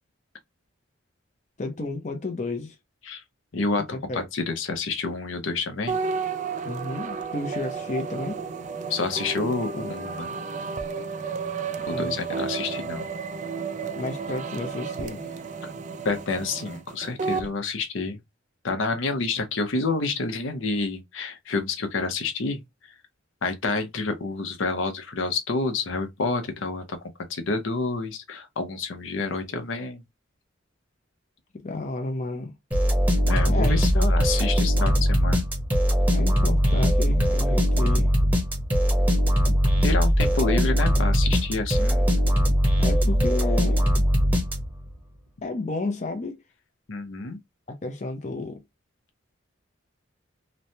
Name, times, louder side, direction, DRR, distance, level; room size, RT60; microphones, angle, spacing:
voice 1, 1.6-2.8 4.1-4.2 6.6-8.4 11.9-12.2 14.0-15.4 31.5-32.5 33.5-34.1 36.1-38.1 42.8-43.9 45.4-46.4 47.7-48.6, left 3 dB, 35° left, 0.5 m, -32 dB
voice 2, 3.5-3.9 4.1-6.0 8.9-10.3 11.9-13.1 15.6-15.7 16.0-18.2 18.6-22.6 23.4-27.0 27.3-30.0 33.2-35.4 39.8-42.1 46.9-47.4, left 3 dB, 75° left, 0.7 m, -28 dB
sound 1, 5.9-17.5, right 5 dB, 35° right, 0.3 m, -32 dB
sound 2, 32.7-44.9, equal, 10° right, 0.8 m, -21 dB
3.1 x 2.1 x 2.6 m
head